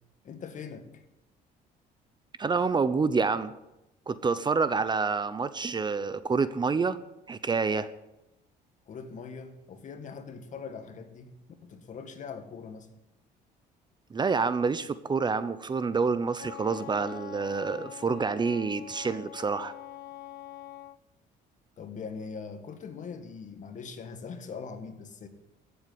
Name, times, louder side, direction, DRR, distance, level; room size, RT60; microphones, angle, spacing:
voice 1, 0.2-1.0 8.9-11.3 11.6-12.9 21.8-25.3, left 5 dB, 45° left, 8 dB, 2.0 m, -41 dB
voice 2, 2.4-3.5 4.1-7.0 7.3-7.9 14.1-19.7, right 4 dB, 25° right, 13 dB, 0.8 m, -28 dB
Wind instrument woodwind instrument, 16.4-21.0, left 14 dB, 75° left, 0.8 m, -44 dB
15.0 x 8.3 x 9.5 m, 0.93 s
cardioid pair, 110°, 17 cm